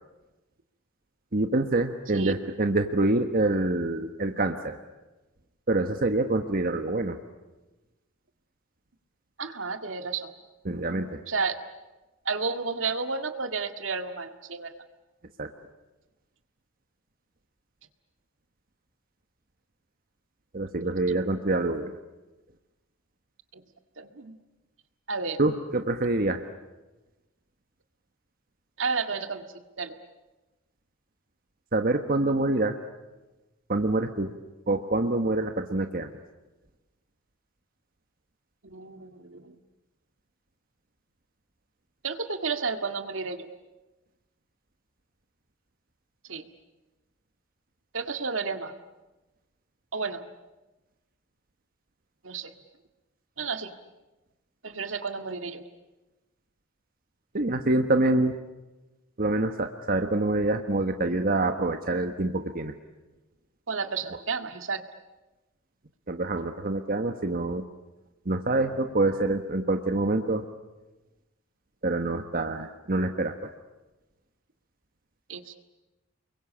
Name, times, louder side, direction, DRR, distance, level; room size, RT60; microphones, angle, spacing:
voice 1, 1.3-4.8 5.7-7.2 10.6-11.2 15.4-15.5 20.5-22.0 25.4-26.4 31.7-32.8 33.7-34.3 34.7-36.2 57.3-58.3 59.2-62.7 66.1-67.6 68.2-70.4 71.8-73.5, right 2 dB, 45° right, 6 dB, 1.3 m, -26 dB
voice 2, 9.4-10.3 11.3-11.6 12.3-14.7 23.5-23.6 24.0-24.4 25.1-25.4 28.8-29.5 29.8-29.9 38.6-39.6 42.0-43.5 46.3-46.5 47.9-48.7 49.9-50.2 52.2-52.5 53.4-53.7 54.6-55.6 63.7-64.8 75.3-75.6, right 4 dB, 75° right, 7 dB, 1.9 m, -31 dB
30.0 x 22.5 x 8.6 m, 1.1 s
head